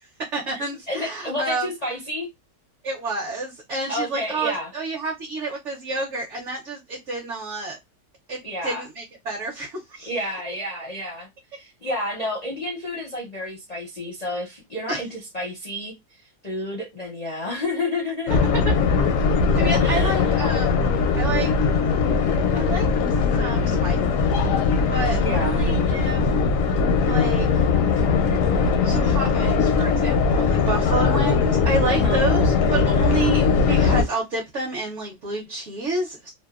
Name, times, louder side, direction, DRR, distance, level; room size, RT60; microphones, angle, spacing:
voice 1, 0.0-1.7 2.8-7.8 8.3-10.1 14.9-15.0 18.6-18.7 19.6-20.7 21.2-21.5 22.5-22.8 23.4-24.0 24.9-26.3 27.0-27.5 28.8-36.3, right 2 dB, 60° right, 0.9 m, -29 dB
voice 2, 0.9-2.3 3.9-4.7 8.4-8.8 10.1-11.3 11.6-15.9 16.4-18.4 19.8-20.2 25.2-25.6 31.9-32.2, left 1 dB, 45° left, 0.5 m, -30 dB
sound 1, 18.3-34.0, left 5 dB, 70° left, 0.8 m, -20 dB
2.7 x 2.1 x 2.3 m
omnidirectional pair, 1.7 m